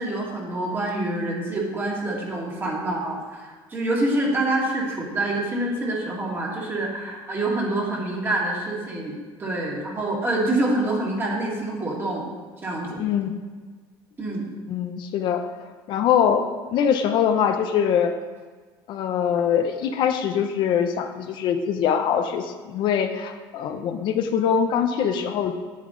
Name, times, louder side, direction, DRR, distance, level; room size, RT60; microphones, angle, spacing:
voice 1, 0.0-9.1 9.4-12.2 12.6-13.0 14.2-14.5, right 2 dB, 20° right, -2 dB, 2.1 m, -26 dB
voice 2, 13.0-13.4 14.7-15.5 15.9-18.1 18.9-25.5, left 8 dB, 55° left, 6 dB, 0.7 m, -23 dB
10.0 x 8.4 x 3.8 m, 1.4 s
cardioid pair, 155°, 10 cm